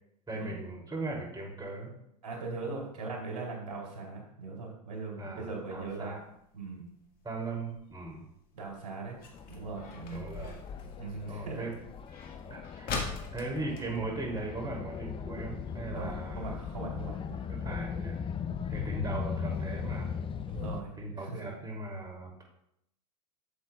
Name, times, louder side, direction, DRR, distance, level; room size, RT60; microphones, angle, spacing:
voice 1, 0.3-1.9 5.2-6.2 7.2-8.3 10.1-10.6 11.3-11.7 12.5-16.5 17.5-18.2 18.7-20.1 21.0-22.4, right 2 dB, 20° right, 0 dB, 2.7 m, -38 dB
voice 2, 2.2-6.2 6.5-6.8 8.5-9.2 9.5-10.3 11.0-11.7 15.9-17.4 18.4-18.7 20.5-21.5, right 3 dB, 80° right, -2 dB, 2.9 m, -40 dB
sound 1, 5.7-15.0 15.3-15.4 15.7-16.0 16.6-16.7 17.2-17.3 17.6-17.7 18.0-18.1, left 4 dB, 45° left, 1.7 m, -43 dB
sound 2, 9.3-20.8, left 7 dB, 25° left, 0.5 m, -38 dB
8.3 x 7.5 x 2.3 m, 0.76 s
hypercardioid pair, 90°, 21 cm